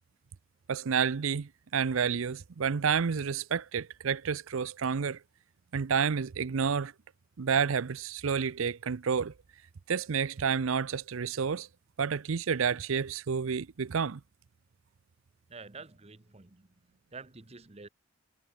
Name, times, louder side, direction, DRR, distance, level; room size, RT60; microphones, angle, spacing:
voice 1, 0.7-5.2 5.7-6.9 7.4-9.3 9.9-11.7 12.0-14.2, right 6 dB, 75° right, 0.5 m, -30 dB
voice 2, 15.5-16.7 17.1-17.9, right 4 dB, 30° right, 0.9 m, -48 dB
head